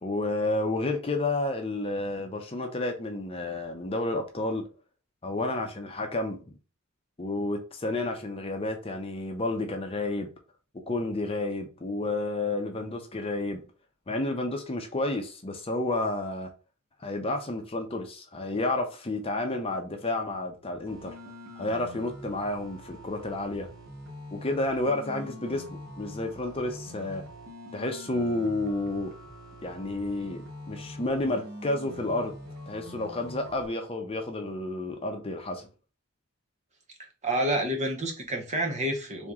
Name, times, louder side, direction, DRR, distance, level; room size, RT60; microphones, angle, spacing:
voice 1, 0.0-4.6 5.2-6.6 7.2-10.3 10.9-13.6 14.1-16.5 17.0-21.1 21.6-23.7 24.3-25.6 26.0-27.2 27.7-29.1 29.6-32.3 32.7-35.7, left 2 dB, 25° left, 0.6 m, -30 dB
sound 1, 20.9-33.7, left 1 dB, 80° right, 1.5 m, -44 dB
voice 2, 37.2-39.3, right 1 dB, 30° right, 0.8 m, -28 dB
3.5 x 3.0 x 3.6 m
head